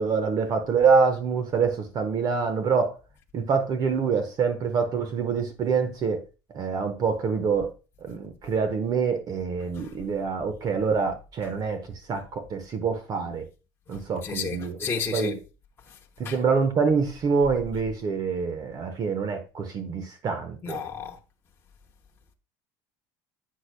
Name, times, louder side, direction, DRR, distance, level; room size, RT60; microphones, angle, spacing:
voice 1, 0.0-2.9 3.3-6.2 6.5-7.7 8.0-11.8 12.1-13.4 13.9-15.4 16.2-20.8, right 5 dB, 40° right, 1.0 m, -26 dB
voice 2, 13.9-15.4 16.2-16.3 20.6-21.2, left 5 dB, 25° left, 0.9 m, -32 dB
8.4 x 5.8 x 2.2 m
cardioid pair, 130°, 10 cm